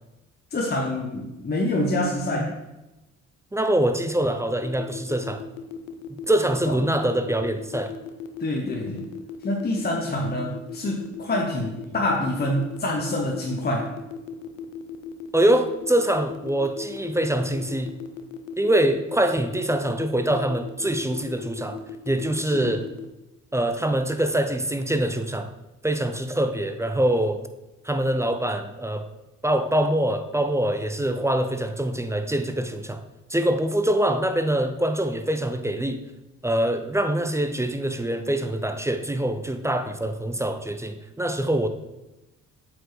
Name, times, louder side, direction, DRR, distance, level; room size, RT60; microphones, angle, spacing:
voice 1, 0.5-2.5 6.7-6.8 8.4-9.0 9.4-13.9 22.4-22.8, left 1 dB, 25° left, 0 dB, 1.0 m, -26 dB
voice 2, 3.5-5.4 6.3-7.9 15.3-17.9 18.6-21.8 22.1-22.8 23.5-25.5 25.8-27.4 27.8-29.1 29.4-33.0 33.3-36.0 36.4-41.7, right 1 dB, 10° right, 8 dB, 0.5 m, -24 dB
sound 1, 4.6-23.0, left 8 dB, 90° left, 0.5 m, -37 dB
7.6 x 4.4 x 3.3 m, 0.99 s
hypercardioid pair, 50°, 37 cm